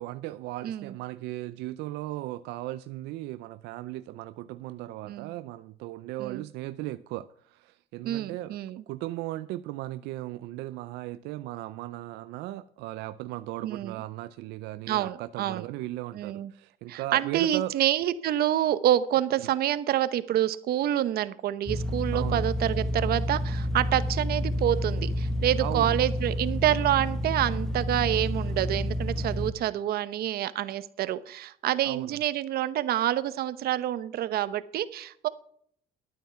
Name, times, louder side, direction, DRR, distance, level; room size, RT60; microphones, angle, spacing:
voice 1, 0.0-8.6 8.9-17.7 22.1-22.4 25.6-26.0 31.8-32.2, right 16 dB, 90° right, 0.5 m, -37 dB
voice 2, 0.6-0.9 5.1-5.3 6.2-6.4 8.0-8.8 13.6-14.0 14.9-15.7 16.1-16.5 16.9-35.3, right 12 dB, 65° right, 0.9 m, -27 dB
sound 1, 21.7-29.5, left 1 dB, 5° left, 1.2 m, -29 dB
12.0 x 9.2 x 5.6 m
cardioid pair, 110°, 17 cm